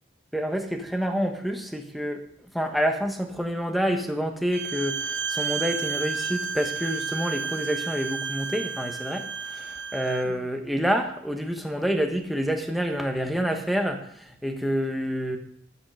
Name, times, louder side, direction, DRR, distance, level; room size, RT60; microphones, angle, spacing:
voice 1, 0.3-15.4, equal, ahead, 3 dB, 1.3 m, -28 dB
Bowed string instrument, 4.5-10.3, right 5 dB, 70° right, 0.7 m, -31 dB
12.5 x 9.7 x 5.0 m, 0.70 s
head